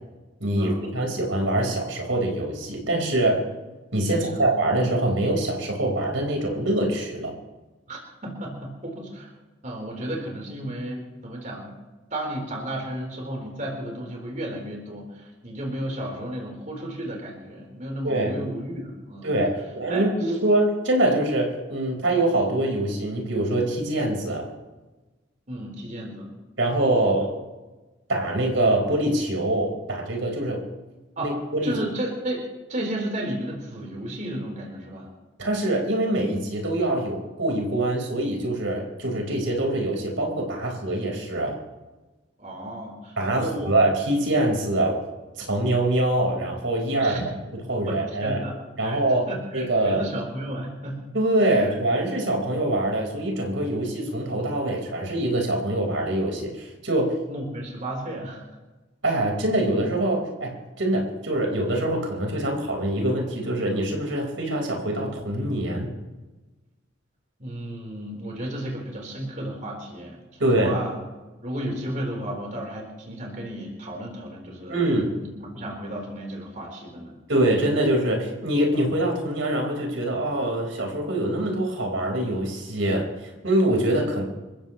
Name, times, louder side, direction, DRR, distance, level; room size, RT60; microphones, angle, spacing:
voice 1, 0.4-3.4 3.9-7.3 18.0-18.4 19.2-24.5 26.6-27.3 28.1-30.6 31.2-31.8 35.4-41.6 43.2-45.0 45.4-47.1 47.7-48.4 48.8-50.0 51.1-57.2 59.0-65.9 70.4-70.8 74.7-75.2 77.3-84.2, right 1 dB, 80° right, 0 dB, 4.7 m, -24 dB
voice 2, 4.1-4.5 7.9-9.3 9.6-11.7 12.1-19.3 19.9-20.4 25.5-26.3 31.2-31.4 31.6-32.4 32.7-35.1 42.4-43.7 47.0-47.2 47.9-49.0 49.3-51.0 51.6-51.7 57.3-58.4 67.4-70.9 71.4-74.8 75.2-77.2, right 1 dB, 40° right, 0 dB, 4.0 m, -33 dB
28.0 x 15.0 x 3.1 m, 1.1 s
head